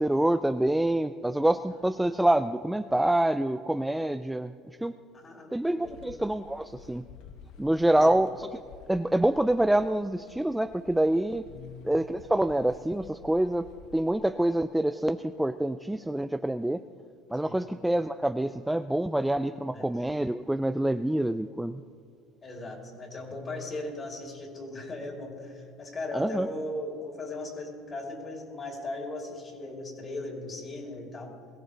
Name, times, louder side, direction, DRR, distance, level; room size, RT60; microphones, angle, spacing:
voice 1, 0.0-4.5 4.8-4.9 5.5-7.0 7.6-8.5 8.9-11.4 11.8-13.7 13.9-16.8 17.3-21.8 26.1-26.5, right 1 dB, 5° right, 9 dB, 0.3 m, -26 dB
voice 2, 5.1-5.5 5.8-6.0 7.7-8.1 11.4-11.7 17.4-17.5 19.7-19.8 22.4-31.3, left 2 dB, 25° left, 0 dB, 3.3 m, -38 dB
sound 1, 5.8-14.1, left 7 dB, 65° left, 1.0 m, -52 dB
22.0 x 16.0 x 3.3 m, 2.1 s
supercardioid pair, 125°, 0 cm